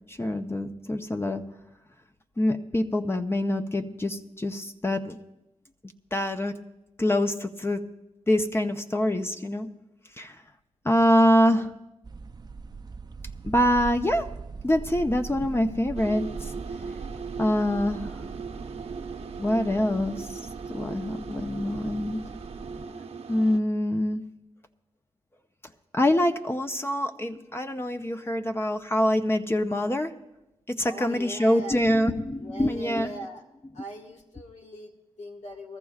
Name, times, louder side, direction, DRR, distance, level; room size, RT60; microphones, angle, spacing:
voice 1, 0.1-1.4 2.4-5.2 6.1-6.5 7.0-7.8 8.3-9.7 10.2-10.3 10.8-11.7 13.4-14.3 14.6-16.5 17.4-18.1 19.4-20.4 20.7-22.2 23.3-24.2 25.9-30.1 30.7-33.1, left 1 dB, 20° left, 7 dB, 0.6 m, -25 dB
sound 1, 12.0-22.9, right 4 dB, 35° right, 0.5 m, -41 dB
sound 2, 15.9-23.6, right 5 dB, 60° right, 0.8 m, -38 dB
voice 2, 30.9-31.8 32.4-33.4 33.7-35.8, left 1 dB, 75° left, 0 dB, 1.8 m, -40 dB
21.0 x 14.0 x 2.4 m, 0.95 s
cardioid pair, 65°, 12 cm